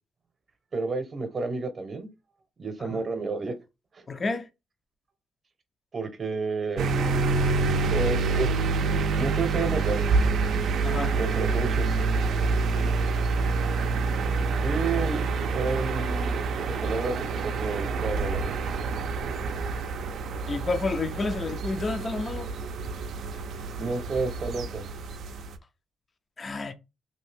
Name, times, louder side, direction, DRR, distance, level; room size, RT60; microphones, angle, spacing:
voice 1, 0.7-2.1 2.6-3.5 3.9-4.0 5.9-7.7 7.9-8.5 9.2-10.1 11.2-12.0 14.6-18.8 23.8-24.9, right 4 dB, 40° right, 0.8 m, -31 dB
voice 2, 4.1-4.5 10.8-11.2 20.5-22.5 26.4-26.7, left 3 dB, 35° left, 0.4 m, -30 dB
sound 1, 6.8-25.5, right 4 dB, 70° right, 0.4 m, -27 dB
2.7 x 2.5 x 3.4 m
cardioid pair, 90°, 0 cm